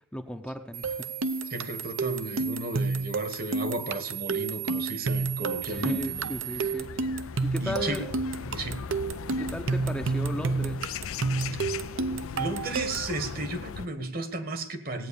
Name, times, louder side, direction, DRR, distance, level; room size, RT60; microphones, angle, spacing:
voice 1, 0.1-1.1 5.7-6.9 7.4-8.1 9.3-10.9, equal, 5° left, 4 dB, 0.7 m, -35 dB
sound 1, 0.7-6.7, right 11 dB, 85° right, 1.6 m, -38 dB
sound 2, 0.8-13.1, right 3 dB, 65° right, 0.7 m, -30 dB
voice 2, 1.5-6.7 7.6-8.1 8.4-8.8 11.5-11.6 12.3-15.1, right 2 dB, 45° right, 9 dB, 1.4 m, -34 dB
sound 3, 5.1-13.9, left 6 dB, 80° left, 0.5 m, -39 dB
17.0 x 9.2 x 6.9 m, 0.71 s
head